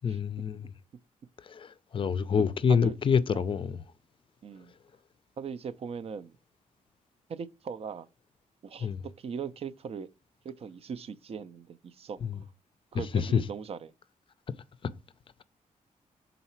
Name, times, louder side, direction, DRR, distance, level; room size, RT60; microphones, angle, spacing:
voice 1, 0.0-0.7 1.4-3.8 8.8-9.0 12.2-12.4 12.9-13.4 14.8-14.9, left 6 dB, 40° left, 0.4 m, -27 dB
voice 2, 4.4-4.7 5.4-6.3 7.3-8.1 8.6-10.1 10.4-12.2 12.9-13.9, right 6 dB, 45° right, 0.4 m, -39 dB
5.6 x 4.0 x 4.3 m
wide cardioid pair, 135°, 14 cm